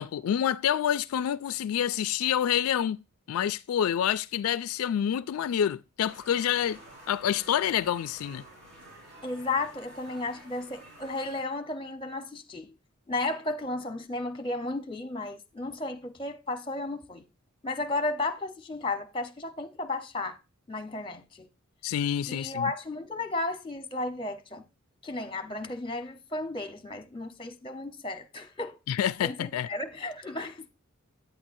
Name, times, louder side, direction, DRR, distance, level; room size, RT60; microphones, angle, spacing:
voice 1, 0.0-3.0 3.3-6.8 7.1-8.4 21.8-22.7 28.9-29.7, left 9 dB, 80° left, 0.3 m, -27 dB
sound 1, 6.0-11.4, right 1 dB, 50° right, 4.5 m, -50 dB
voice 2, 9.2-12.7 13.1-17.2 17.6-20.4 20.7-21.5 22.3-24.6 25.0-28.8 29.2-30.7, left 2 dB, 25° left, 1.0 m, -34 dB
9.0 x 8.8 x 2.6 m
head